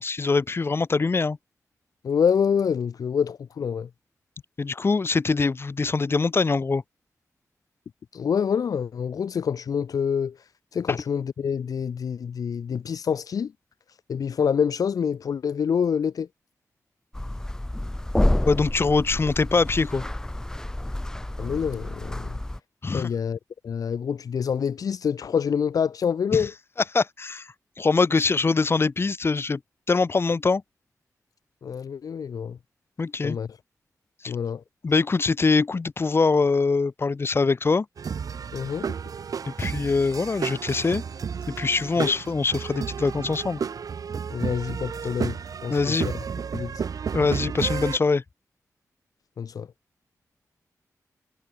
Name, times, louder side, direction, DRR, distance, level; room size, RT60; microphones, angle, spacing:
voice 1, 0.0-1.4 4.6-6.8 10.9-11.0 18.4-20.0 22.8-23.1 26.3-26.5 26.9-27.5 27.8-29.6 29.9-30.6 33.0-33.4 34.2-34.3 34.8-37.9 39.6-41.0 41.5-43.6 45.7-46.1 47.1-48.2, left 4 dB, 40° left, 2.4 m, -23 dB
voice 2, 2.0-3.9 8.1-10.4 10.7-13.5 14.1-16.3 21.4-22.4 22.9-23.4 23.6-26.5 31.6-32.6 33.2-33.5 34.3-34.6 38.5-38.9 42.0-42.1 44.3-46.0 46.5-46.8 49.4-49.7, left 7 dB, 80° left, 0.7 m, -26 dB
sound 1, 17.1-22.6, left 1 dB, 10° left, 0.6 m, -28 dB
sound 2, 38.0-48.0, right 6 dB, 75° right, 2.0 m, -32 dB
wide cardioid pair, 120°, 6 cm